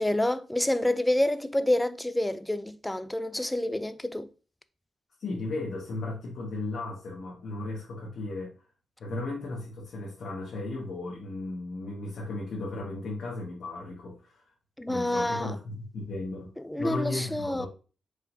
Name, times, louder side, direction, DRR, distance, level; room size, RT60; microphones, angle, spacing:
voice 1, 0.0-4.3 14.8-15.6 16.6-17.7, left 1 dB, 5° left, 0.3 m, -28 dB
voice 2, 5.2-8.5 9.0-14.4 14.9-17.7, left 2 dB, 65° left, 1.4 m, -35 dB
4.9 x 3.9 x 2.6 m
wide cardioid pair, 130°, 0 cm